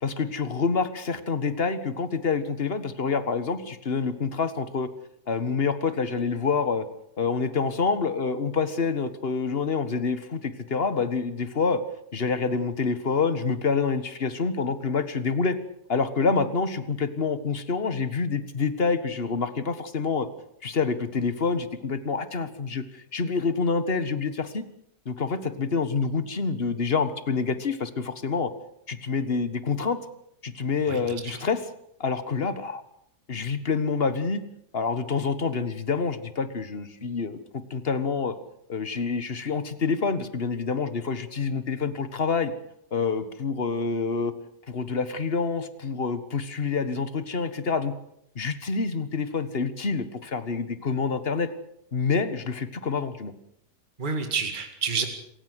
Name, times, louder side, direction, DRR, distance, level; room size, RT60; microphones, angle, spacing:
voice 1, 0.0-4.9 5.3-6.9 7.2-11.8 12.1-15.6 15.9-20.3 20.6-24.6 25.0-28.5 28.9-30.0 30.4-31.6 32.0-32.8 33.3-34.4 34.7-37.4 37.7-38.3 38.7-42.5 42.9-44.3 44.7-47.9 48.3-51.5 51.9-53.3, left 5 dB, 35° left, 12 dB, 1.7 m, -27 dB
voice 2, 30.8-31.4 54.0-55.1, right 5 dB, 30° right, 5 dB, 2.3 m, -29 dB
26.5 x 16.0 x 8.1 m, 0.75 s
omnidirectional pair, 1.8 m